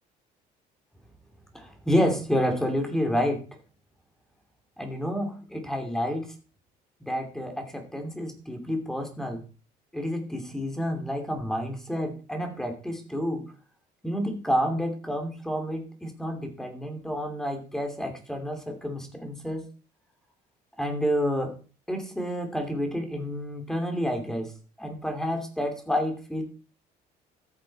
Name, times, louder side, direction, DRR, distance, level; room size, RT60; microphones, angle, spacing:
voice 1, 1.5-3.5 4.8-6.3 7.0-9.4 9.9-13.5 14.0-19.7 20.8-21.5 21.9-24.5 24.8-26.4, equal, 5° left, 4 dB, 2.9 m, -29 dB
14.0 x 8.3 x 4.3 m, 0.38 s
cardioid pair, 140°, 17 cm